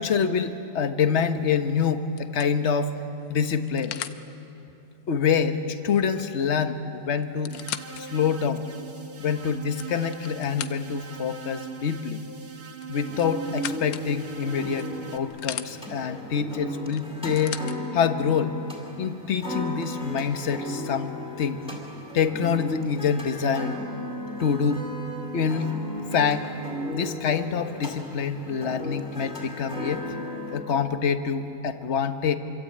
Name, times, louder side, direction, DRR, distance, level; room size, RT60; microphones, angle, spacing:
voice 1, 0.0-2.9 3.3-4.0 5.1-7.6 7.9-8.7 9.2-12.2 12.9-17.6 17.9-18.6 19.0-21.1 21.4-21.6 22.1-23.8 24.4-24.8 25.3-25.7 26.1-26.5 26.9-30.1 30.5-32.4, left 6 dB, 40° left, 8 dB, 1.3 m, -26 dB
sound 1, 1.3-1.6 2.2-4.2 6.3-6.4 6.6-6.7 7.2-8.0 8.6-8.7 9.5-11.1 12.8-14.1 14.8-15.7 16.9-17.8 18.7-18.8, left 10 dB, 80° left, 1.5 m, -38 dB
sound 2, 7.5-15.2, right 6 dB, 55° right, 2.0 m, -41 dB
sound 3, 13.0-30.6, equal, 5° right, 4.2 m, -36 dB
26.5 x 24.0 x 8.7 m, 2.9 s
omnidirectional pair, 2.0 m